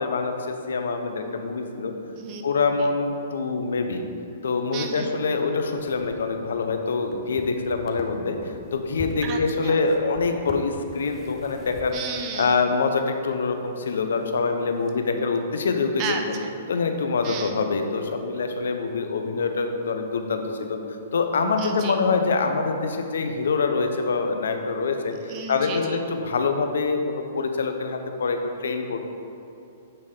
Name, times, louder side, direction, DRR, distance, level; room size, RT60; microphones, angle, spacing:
voice 1, 0.0-1.9 2.4-4.0 4.4-12.0 12.4-16.1 16.7-20.8 21.1-29.1, left 4 dB, 85° left, 6 dB, 0.6 m, -25 dB
voice 2, 4.7-5.1 9.2-9.8 11.9-12.6 16.0-16.5 17.2-17.5 21.6-22.0 25.3-26.0, right 5 dB, 35° right, 3 dB, 0.7 m, -33 dB
sound 1, 5.8-13.0 13.4-15.2 15.5-15.6 19.3-19.4 19.5-19.6 22.1-22.2, left 2 dB, 15° left, 0.6 m, -43 dB
8.8 x 4.2 x 3.7 m, 2.7 s
hypercardioid pair, 150°, 0 cm